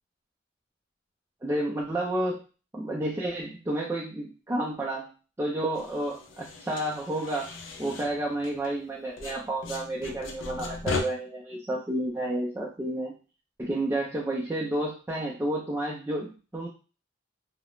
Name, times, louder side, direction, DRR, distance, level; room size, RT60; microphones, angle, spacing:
voice 1, 1.4-2.4 2.7-5.1 5.4-7.5 7.8-13.1 13.6-16.7, right 1 dB, 15° right, -4 dB, 0.3 m, -30 dB
sound 1, 5.7-8.9 9.2-11.0, left 4 dB, 70° left, 0.4 m, -37 dB
2.3 x 2.0 x 3.0 m, 0.35 s
head